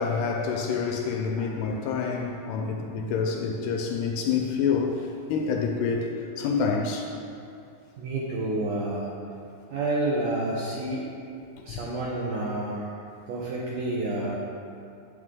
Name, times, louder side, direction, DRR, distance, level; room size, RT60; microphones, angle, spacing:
voice 1, 0.0-6.1 6.4-7.1 11.7-11.8, left 5 dB, 80° left, 2 dB, 2.5 m, -27 dB
voice 2, 8.0-9.1 9.7-11.1 11.6-12.9 13.3-14.4, right 2 dB, 75° right, -6 dB, 1.9 m, -29 dB
8.9 x 8.3 x 3.7 m, 2.5 s
omnidirectional pair, 4.9 m